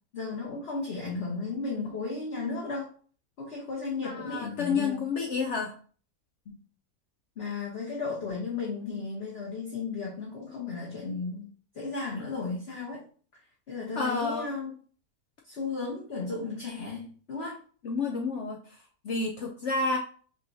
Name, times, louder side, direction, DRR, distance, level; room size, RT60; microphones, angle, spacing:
voice 1, 0.1-2.9 3.4-5.0 6.5-6.6 7.4-11.5 11.7-13.0 13.7-14.7 15.4-17.6, left 4 dB, 45° left, -4 dB, 1.2 m, -34 dB
voice 2, 4.0-5.7 14.0-14.5 17.8-18.6 19.0-20.0, left 4 dB, 65° left, 1 dB, 0.7 m, -29 dB
5.4 x 2.9 x 2.7 m, 0.43 s
omnidirectional pair, 1.6 m